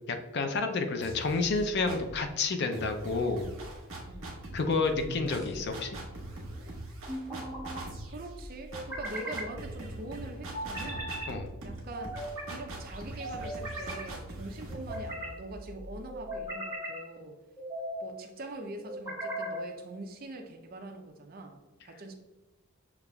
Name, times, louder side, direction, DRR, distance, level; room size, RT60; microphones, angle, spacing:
voice 1, 0.1-3.5 4.5-6.0 11.3-11.5, left 3 dB, 50° left, 6 dB, 0.4 m, -30 dB
sound 1, 1.0-2.2 2.7-16.4, right 1 dB, 65° right, 1.1 m, -42 dB
voice 2, 4.1-4.4 7.2-7.5 8.1-11.1 11.6-12.2 12.5-17.4 18.0-21.6 21.8-22.1, right 2 dB, 40° right, 4 dB, 0.5 m, -43 dB
sound 2, 5.0-5.7 7.1-7.8 8.7-9.5 10.5-11.3 11.9-12.6 13.2-14.0 14.7-15.4 16.1-17.0 17.6-18.1 18.8-19.7, equal, 15° right, 1.1 m, -38 dB
6.8 x 2.4 x 2.2 m, 1.1 s
head